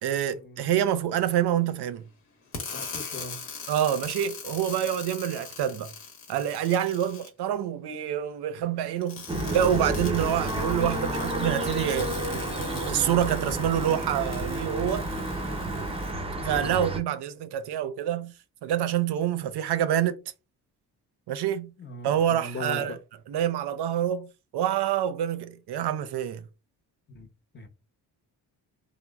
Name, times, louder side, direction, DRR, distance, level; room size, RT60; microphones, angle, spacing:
voice 1, 0.0-2.0 3.7-5.9 6.3-9.2 9.5-12.1 12.8-15.1 16.4-18.3 18.6-20.2 21.3-21.7 22.0-23.0 23.3-26.4, right 10 dB, 65° right, 0.5 m, -27 dB
sound 1, 2.5-7.3 9.0-16.1, left 5 dB, 90° left, 1.0 m, -41 dB
voice 2, 2.7-3.4 16.6-16.8 21.8-23.0 27.1-27.3 27.5-27.7, left 1 dB, 25° left, 0.7 m, -38 dB
sound 2, 9.3-17.0, right 1 dB, 15° right, 0.6 m, -30 dB
3.0 x 2.1 x 2.2 m
supercardioid pair, 60°, 44 cm